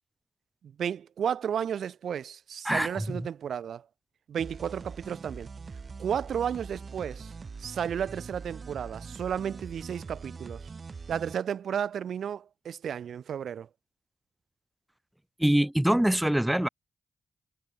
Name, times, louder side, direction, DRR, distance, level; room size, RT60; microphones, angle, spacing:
voice 1, 0.8-3.8 4.3-5.5 6.0-7.3 7.6-10.6 11.1-13.7, right 8 dB, 70° right, 1.3 m, -33 dB
voice 2, 2.6-3.2 15.4-16.7, right 1 dB, 10° right, 0.4 m, -24 dB
sound 1, 4.4-11.3, right 4 dB, 50° right, 1.7 m, -42 dB
supercardioid pair, 40°, 0 cm